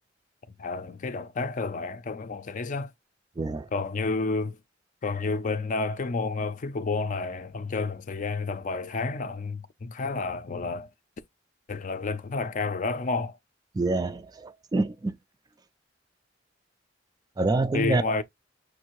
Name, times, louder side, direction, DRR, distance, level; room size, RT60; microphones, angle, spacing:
voice 1, 0.6-2.9 3.7-4.6 5.0-10.9 11.7-13.4 17.7-18.2, left 3 dB, 45° left, 0.5 m, -30 dB
voice 2, 3.4-3.7 13.7-15.1 17.4-18.1, right 2 dB, 20° right, 0.3 m, -27 dB
6.3 x 2.6 x 3.0 m
head